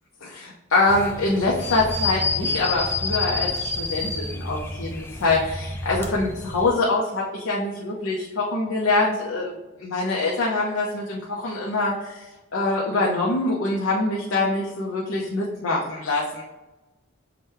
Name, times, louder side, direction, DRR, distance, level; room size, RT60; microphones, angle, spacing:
voice 1, 0.2-16.4, left 2 dB, 90° left, -3 dB, 0.7 m, -24 dB
sound 1, 0.9-6.7, left 3 dB, 10° left, 0.3 m, -29 dB
5.8 x 2.2 x 3.3 m, 1.1 s
head